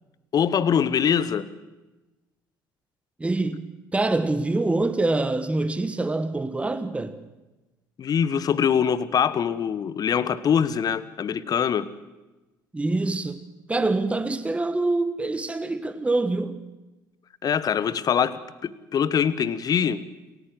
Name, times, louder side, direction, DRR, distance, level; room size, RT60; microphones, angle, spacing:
voice 1, 0.3-1.5 8.0-11.9 17.4-20.1, left 8 dB, 35° left, 1.1 m, -23 dB
voice 2, 3.2-7.2 12.7-13.4 13.7-16.6, right 2 dB, 10° right, 1.4 m, -25 dB
28.5 x 14.5 x 7.9 m
figure-of-eight pair, 55°, 11 cm